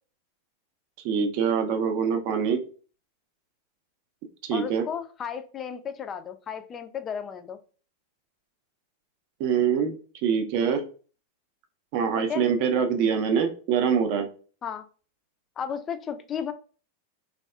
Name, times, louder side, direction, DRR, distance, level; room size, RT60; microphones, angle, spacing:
voice 1, 1.0-2.6 4.4-4.8 9.4-9.9 10.2-10.8 11.9-14.3, right 7 dB, 45° right, 7 dB, 0.5 m, -24 dB
voice 2, 4.5-7.6 12.2-12.5 14.6-14.8 15.6-16.5, left 7 dB, 25° left, 9 dB, 0.3 m, -34 dB
3.4 x 2.3 x 2.3 m, 0.39 s
figure-of-eight pair, 90°, 0 cm